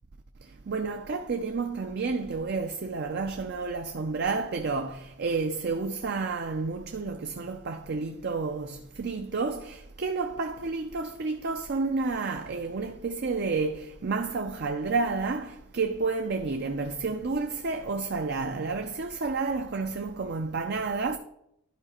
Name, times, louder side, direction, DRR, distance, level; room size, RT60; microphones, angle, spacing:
voice 1, 0.7-21.2, right 4 dB, 50° right, 0.5 m, -30 dB
11.5 x 4.8 x 4.3 m
head